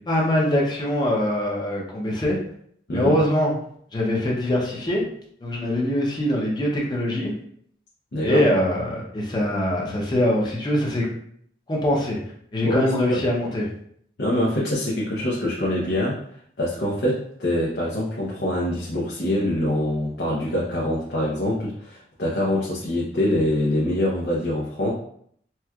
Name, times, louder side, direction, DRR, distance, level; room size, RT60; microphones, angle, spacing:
voice 1, 0.1-2.4 2.9-3.5 3.9-5.1 5.4-7.3 8.2-11.1 11.7-12.2 12.5-13.7, left 1 dB, 25° left, -3 dB, 0.7 m, -23 dB
voice 2, 12.6-13.2 14.2-16.2 16.6-24.9, left 1 dB, 70° left, -5 dB, 0.7 m, -24 dB
4.2 x 2.2 x 2.3 m, 0.65 s
head